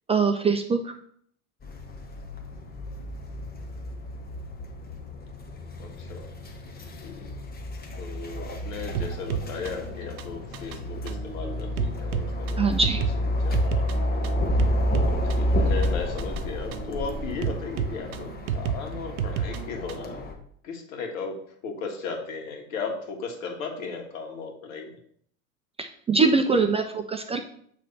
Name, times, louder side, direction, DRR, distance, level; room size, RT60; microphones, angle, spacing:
voice 1, 0.1-0.9 12.6-13.0 25.8-27.5, right 4 dB, 15° right, 5 dB, 0.4 m, -23 dB
sound 1, 1.6-20.3, equal, 20° left, 1.1 m, -30 dB
voice 2, 5.8-6.3 6.8-7.3 7.9-12.8 13.2-14.3 15.0-20.3 20.6-21.4 21.6-25.0, left 4 dB, 70° left, 1 dB, 1.7 m, -36 dB
sound 2, 8.9-20.2, right 8 dB, 80° right, 0.6 m, -33 dB
8.0 x 3.3 x 4.1 m, 0.62 s
hypercardioid pair, 90°, 42 cm